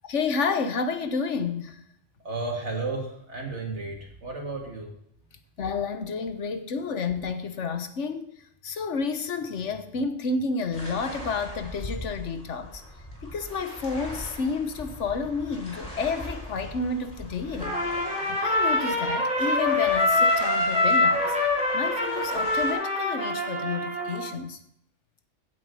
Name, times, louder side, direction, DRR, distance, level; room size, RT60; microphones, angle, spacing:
voice 1, 0.1-1.8 5.6-8.3 8.6-12.8 13.2-17.8 18.3-21.3 21.7-24.6, left 4 dB, 80° left, 1.4 m, -30 dB
voice 2, 2.2-4.9, right 3 dB, 70° right, 2.9 m, -33 dB
sound 1, 10.7-22.7, equal, 30° left, 4.3 m, -41 dB
Trumpet, 17.6-24.3, left 2 dB, 5° right, 3.4 m, -25 dB
16.0 x 7.9 x 4.8 m
omnidirectional pair, 1.2 m